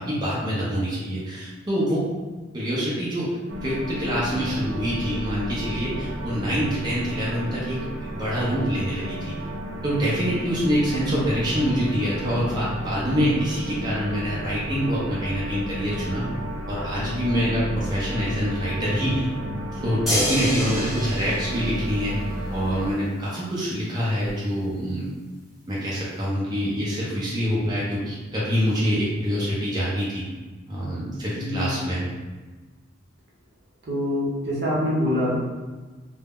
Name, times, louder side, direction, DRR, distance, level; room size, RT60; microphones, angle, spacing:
voice 1, 0.0-2.0 2.5-3.4 3.6-9.4 9.8-16.3 16.7-19.3 19.7-22.1 22.5-25.1 25.7-30.2 30.7-32.1, equal, 20° right, -8 dB, 0.5 m, -25 dB
sound 1, 3.5-22.9, equal, 90° right, 0.5 m, -33 dB
sound 2, 20.1-22.5 24.3-24.4, equal, ahead, 0.9 m, -28 dB
voice 2, 31.3-31.7 33.8-35.4, left 1 dB, 60° right, -5 dB, 0.8 m, -25 dB
2.1 x 2.0 x 3.5 m, 1.3 s
head